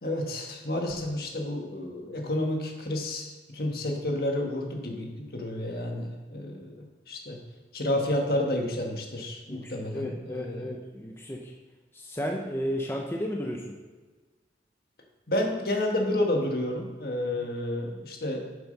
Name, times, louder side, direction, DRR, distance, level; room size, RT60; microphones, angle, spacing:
voice 1, 0.0-7.4 7.7-10.8 15.3-18.5, left 1 dB, 60° left, 2 dB, 1.5 m, -30 dB
voice 2, 9.5-11.5 11.9-13.7 17.3-17.5, equal, 15° left, 0 dB, 0.7 m, -33 dB
7.2 x 7.2 x 5.4 m, 1.3 s
head